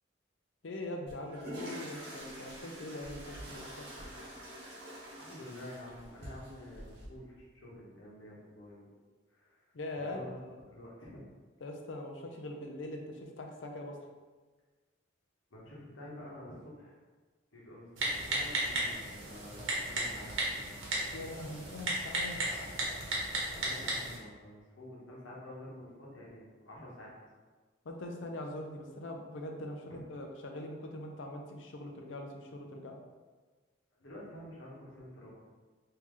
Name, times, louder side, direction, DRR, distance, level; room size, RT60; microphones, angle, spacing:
voice 1, 0.6-4.0 9.7-10.6 11.6-14.0 21.1-22.4 27.8-33.0, left 1 dB, 70° left, 2 dB, 0.5 m, -42 dB
sound 1, 1.1-7.1, right 1 dB, 55° right, 1.0 m, -46 dB
voice 2, 5.2-9.0 9.3-9.7 10.0-11.2 15.5-17.0 17.5-20.6 23.6-27.1 29.9-30.0 34.0-35.3, left 1 dB, 85° left, -5 dB, 1.1 m, -49 dB
Typing, 18.0-24.2, right 1 dB, 85° right, 0.9 m, -35 dB
3.1 x 2.8 x 3.7 m, 1.4 s
head